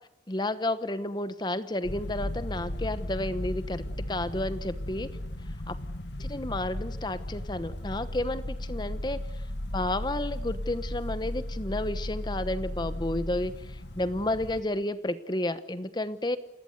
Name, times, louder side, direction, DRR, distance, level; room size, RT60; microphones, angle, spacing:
voice 1, 0.3-5.1 5.7-5.8 6.2-9.2 9.7-13.6 14.0-16.4, left 1 dB, 25° left, 13 dB, 1.0 m, -31 dB
sound 1, 1.8-14.6, left 1 dB, 80° left, 1.7 m, -35 dB
29.0 x 19.5 x 8.0 m, 0.86 s
head